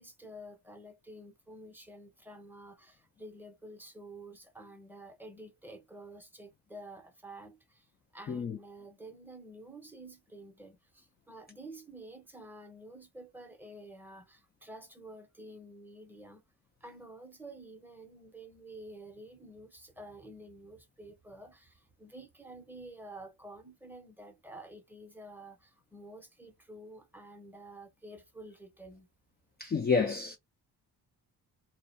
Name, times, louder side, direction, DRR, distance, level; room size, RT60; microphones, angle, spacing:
voice 1, 0.0-16.4 16.8-29.1, right 1 dB, 5° right, 0.7 m, -50 dB
voice 2, 8.3-8.6 29.6-30.4, left 5 dB, 30° left, 0.3 m, -29 dB
2.4 x 2.1 x 2.5 m
cardioid pair, 95°, 38 cm